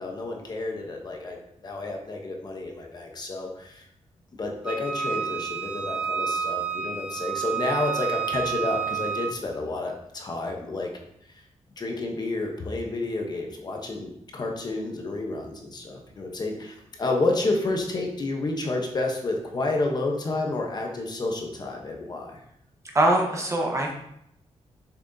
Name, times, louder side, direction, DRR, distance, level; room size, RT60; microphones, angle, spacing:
voice 1, 0.0-1.4 1.6-3.9 4.4-10.9 11.3-11.4 11.8-22.4, left 2 dB, 35° left, 1 dB, 0.9 m, -30 dB
Wind instrument woodwind instrument, 4.6-9.4, right 7 dB, 5° right, 0.5 m, -30 dB
voice 2, 22.9-23.9, right 1 dB, 25° right, 0 dB, 1.1 m, -22 dB
6.8 x 6.0 x 2.7 m, 0.74 s
wide cardioid pair, 160°, 11 cm